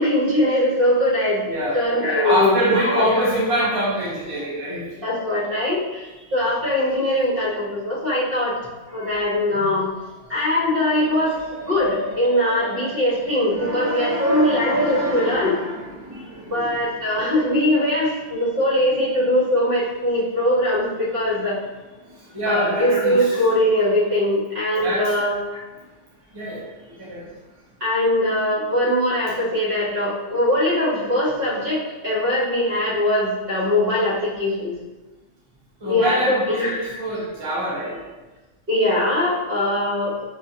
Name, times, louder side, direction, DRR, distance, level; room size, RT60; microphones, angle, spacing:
voice 1, 0.0-1.4 1.7-3.4 5.0-8.6 8.9-9.9 10.3-11.4 11.6-15.6 16.5-21.6 22.4-25.6 27.8-34.7 35.8-37.0 38.7-40.2, left 1 dB, 50° right, -7 dB, 1.4 m, -21 dB
voice 2, 1.5-1.9 2.2-4.8 9.0-9.4 10.9-13.0 13.5-17.3 22.3-23.4 24.8-25.1 26.3-27.2 35.8-38.0, right 1 dB, 25° right, -7 dB, 0.8 m, -26 dB
5.6 x 2.5 x 2.8 m, 1.2 s
omnidirectional pair, 1.2 m